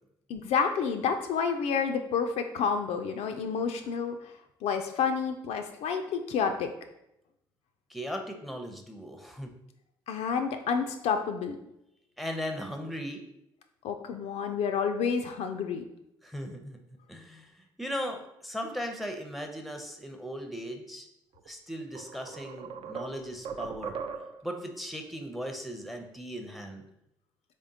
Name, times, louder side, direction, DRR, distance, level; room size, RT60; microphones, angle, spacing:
voice 1, 0.3-4.3 4.6-6.7 10.1-11.6 13.8-15.8, left 6 dB, 55° left, 6 dB, 0.4 m, -29 dB
voice 2, 7.9-9.5 12.2-13.2 16.2-16.8 17.1-21.1 21.5-24.0 24.4-26.9, equal, ahead, 4 dB, 0.6 m, -38 dB
sound 1, 21.4-21.5 22.0-24.5, right 6 dB, 50° right, 0.4 m, -39 dB
3.5 x 3.3 x 2.7 m, 0.83 s
hypercardioid pair, 50°, 13 cm